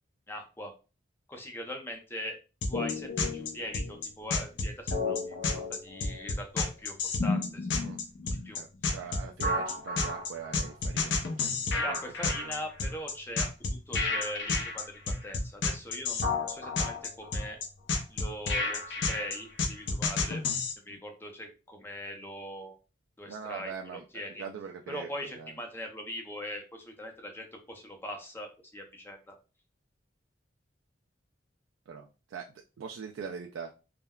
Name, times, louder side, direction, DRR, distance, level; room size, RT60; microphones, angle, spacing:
voice 1, 0.3-0.7 1.3-2.4 2.7-7.7 8.4-9.0 11.7-17.6 18.1-20.4 20.9-22.8 23.2-24.4 24.9-29.4, left 1 dB, 10° left, 3 dB, 0.5 m, -41 dB
sound 1, 2.6-20.7, left 3 dB, 65° left, 0.5 m, -30 dB
voice 2, 8.6-12.6 20.9-21.0 23.3-24.0 24.4-25.5 31.9-32.5 32.8-33.7, right 6 dB, 80° right, 2 dB, 0.3 m, -42 dB
3.5 x 2.1 x 2.2 m, 0.32 s
head